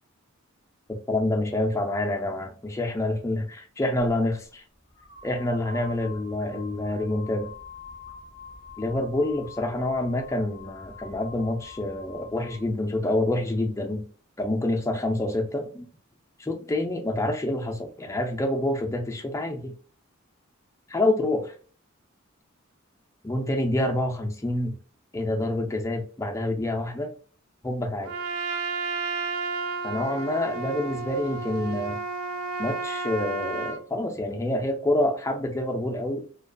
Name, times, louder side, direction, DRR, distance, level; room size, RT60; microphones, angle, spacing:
voice 1, 1.1-4.6 5.2-7.5 8.8-14.1 14.4-15.9 16.4-19.7 20.9-21.5 23.2-24.8 25.1-27.1 27.6-28.1 29.8-32.0 32.6-36.2, left 1 dB, 15° left, 0.4 m, -27 dB
sound 1, 4.9-12.7, left 4 dB, 30° right, 0.7 m, -45 dB
Trumpet, 28.0-33.8, right 4 dB, 80° right, 0.4 m, -32 dB
2.5 x 2.2 x 2.4 m
head